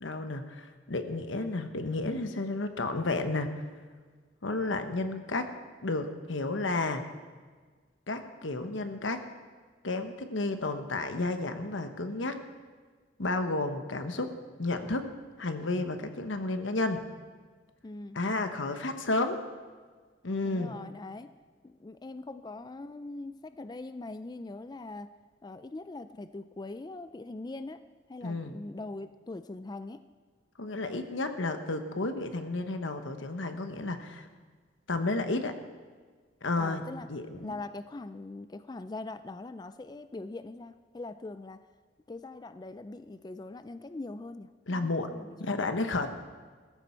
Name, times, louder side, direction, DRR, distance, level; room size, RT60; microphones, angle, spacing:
voice 1, 0.0-3.6 4.4-5.5 5.8-7.0 8.1-9.2 9.8-12.4 13.2-15.1 15.4-17.0 18.1-19.4 20.2-20.8 28.2-28.6 30.6-34.3 34.9-35.5 36.4-36.8 37.1-37.5 44.7-45.1 45.4-46.1, left 2 dB, 90° left, 7 dB, 1.2 m, -32 dB
voice 2, 17.8-18.2 20.4-21.3 21.6-25.1 25.4-27.8 28.1-30.0 36.6-37.1 37.4-41.6 42.1-45.6, left 2 dB, 20° left, 11 dB, 0.3 m, -42 dB
16.5 x 14.5 x 4.5 m, 1.5 s
head